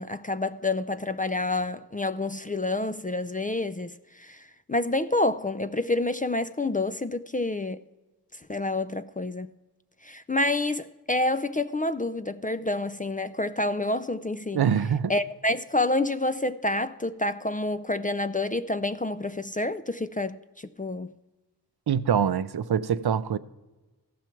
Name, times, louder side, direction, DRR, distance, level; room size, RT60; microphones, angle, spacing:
voice 1, 0.0-4.4 4.7-7.8 8.5-9.5 10.0-14.6 15.1-21.1, left 2 dB, 20° left, 0.3 m, -28 dB
voice 2, 14.5-15.1 21.9-23.4, right 8 dB, 70° right, 0.5 m, -24 dB
15.5 x 5.8 x 4.4 m
wide cardioid pair, 40°, 40 cm